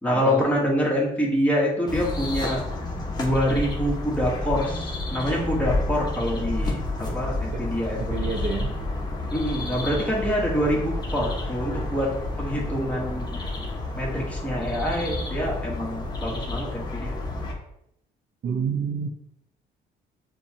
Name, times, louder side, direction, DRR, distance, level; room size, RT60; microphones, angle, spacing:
voice 1, 0.0-2.6 3.2-8.0 9.3-12.1 12.4-13.4 14.0-17.2, equal, 10° left, -4 dB, 1.4 m, -26 dB
sound 1, 1.9-17.5, left 2 dB, 25° left, 1.0 m, -30 dB
voice 2, 7.5-8.7 11.2-11.3 18.4-19.1, right 5 dB, 50° right, 2 dB, 0.6 m, -29 dB
6.7 x 2.3 x 2.9 m, 0.79 s
cardioid pair, 110°, 17 cm